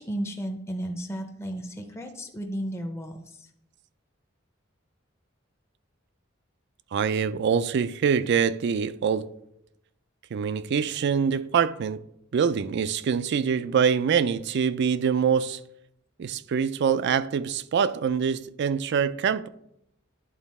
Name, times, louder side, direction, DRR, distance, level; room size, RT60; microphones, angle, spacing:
voice 1, 0.0-3.5, equal, 15° left, 0.6 m, -34 dB
voice 2, 6.9-9.3 10.3-12.0 12.3-15.6 16.2-19.5, right 6 dB, 60° right, 0.4 m, -24 dB
11.0 x 4.0 x 4.2 m
head